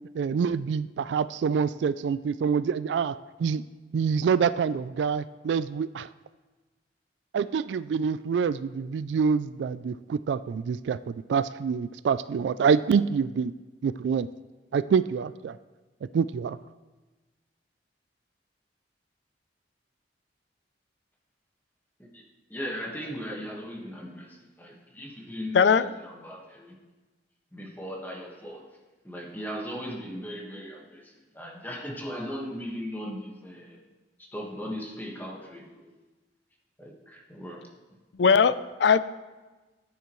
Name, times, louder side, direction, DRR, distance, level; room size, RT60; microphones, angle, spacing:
voice 1, 0.1-3.6 3.9-6.1 7.3-13.5 13.8-14.3 14.7-15.6 16.1-16.6, right 6 dB, 75° right, 16 dB, 0.3 m, -26 dB
voice 2, 22.5-25.8 26.0-26.7 27.5-28.7 29.0-33.8 34.2-35.9 36.8-37.7, equal, 10° left, -1 dB, 1.5 m, -38 dB
voice 3, 25.5-25.9 38.1-39.0, left 6 dB, 70° left, 15 dB, 0.4 m, -20 dB
14.5 x 9.4 x 3.1 m, 1.2 s
head